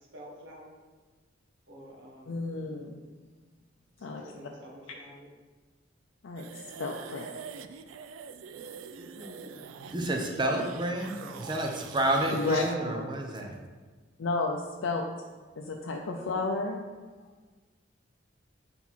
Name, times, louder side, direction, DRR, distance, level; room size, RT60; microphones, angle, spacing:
voice 1, 0.1-0.8 1.7-2.8 4.0-5.3 9.0-9.6 11.2-11.5, equal, 60° right, -3 dB, 1.4 m, -49 dB
voice 2, 2.3-3.0 4.0-4.2 6.2-7.3 12.3-13.1 14.2-15.1 15.6-16.8, left 3 dB, 80° left, 1 dB, 0.5 m, -32 dB
sound 1, 6.4-12.7, right 6 dB, 90° right, 0.3 m, -44 dB
voice 3, 9.9-11.1 11.4-13.6, right 1 dB, 25° right, 2 dB, 0.7 m, -29 dB
5.7 x 4.4 x 4.2 m, 1.4 s
head